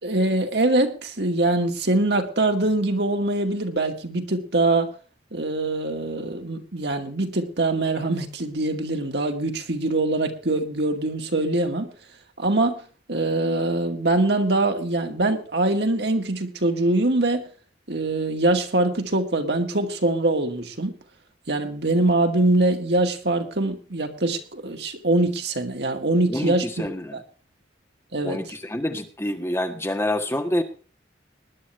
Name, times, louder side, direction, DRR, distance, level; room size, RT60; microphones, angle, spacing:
voice 1, 0.0-4.9 5.3-11.9 12.4-12.8 13.1-17.4 17.9-21.0 21.5-26.7 27.1-27.2 28.1-28.4, right 2 dB, 65° right, 5 dB, 2.3 m, -23 dB
voice 2, 26.3-27.2 28.2-30.6, left 1 dB, 15° left, 5 dB, 1.5 m, -27 dB
20.0 x 11.0 x 3.3 m, 0.38 s
head